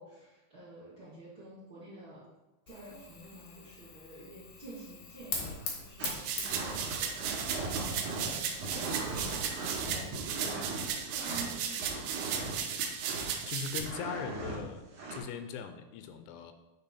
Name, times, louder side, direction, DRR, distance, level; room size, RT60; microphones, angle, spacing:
voice 1, 0.0-2.2 2.7-10.7 11.1-12.1, right 2 dB, 35° right, -10 dB, 2.5 m, -50 dB
Fire, 2.7-10.1, left 4 dB, 70° left, 1.9 m, -44 dB
sound 1, 6.0-13.5 13.8-14.6 14.9-15.2, right 3 dB, 55° right, 2.6 m, -39 dB
sound 2, 6.1-13.8, right 7 dB, 85° right, 2.2 m, -36 dB
voice 2, 13.5-14.8 15.1-16.5, left 7 dB, 90° left, 8 dB, 3.0 m, -40 dB
8.7 x 4.3 x 4.2 m, 1.1 s
omnidirectional pair, 5.4 m